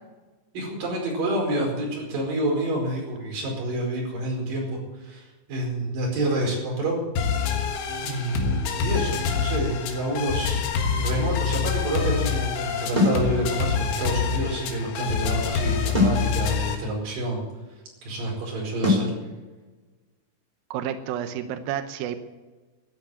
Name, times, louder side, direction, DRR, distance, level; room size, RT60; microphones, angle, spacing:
voice 1, 0.5-7.0 8.0-17.4 18.0-19.1, right 1 dB, 50° right, -1 dB, 6.4 m, -28 dB
sound 1, 7.2-16.8, left 5 dB, 85° left, 4.0 m, -26 dB
sound 2, 12.9-13.2 15.9-16.2 18.8-19.1, left 3 dB, 15° right, 1.8 m, -21 dB
voice 2, 20.7-22.2, right 10 dB, 80° right, 9 dB, 2.1 m, -30 dB
13.0 x 9.8 x 9.1 m, 1.3 s
omnidirectional pair, 5.3 m